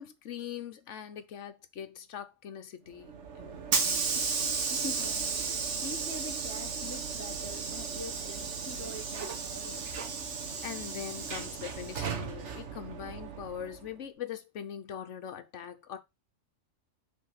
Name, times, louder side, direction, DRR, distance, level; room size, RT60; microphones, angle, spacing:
voice 1, 0.0-4.1 10.6-16.0, left 9 dB, 65° left, 1.2 m, -42 dB
Hiss / Sliding door, 3.0-13.9, right 5 dB, 60° right, 1.4 m, -34 dB
voice 2, 4.7-10.0, left 1 dB, 15° left, 0.8 m, -44 dB
5.8 x 3.8 x 5.7 m
omnidirectional pair, 1.4 m